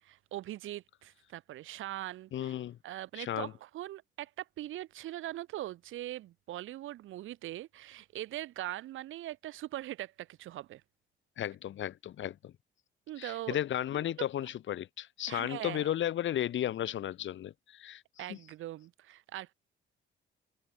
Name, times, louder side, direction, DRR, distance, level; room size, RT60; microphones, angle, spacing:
voice 1, 0.0-2.5 2.8-10.8 13.1-13.6 13.9-14.3 15.3-15.9 18.2-19.5, right 14 dB, 85° right, 3.0 m, -41 dB
voice 2, 2.3-2.8 3.2-3.5 11.4-12.5 13.2-18.0 18.3-18.4, left 11 dB, 70° left, 3.6 m, -34 dB
cardioid pair, 90°, 20 cm